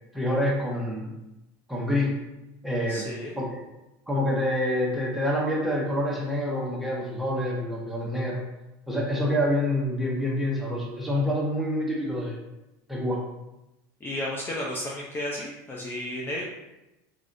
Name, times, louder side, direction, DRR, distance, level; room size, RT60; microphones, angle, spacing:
voice 1, 0.1-1.1 1.7-2.2 2.6-3.1 3.4-3.6 4.1-8.4 8.9-12.4 12.9-13.2, left 1 dB, ahead, -4 dB, 0.8 m, -27 dB
voice 2, 2.9-3.3 14.0-16.4, left 1 dB, 20° left, -4 dB, 0.5 m, -33 dB
3.3 x 2.4 x 2.6 m, 0.97 s
supercardioid pair, 105°, 10 cm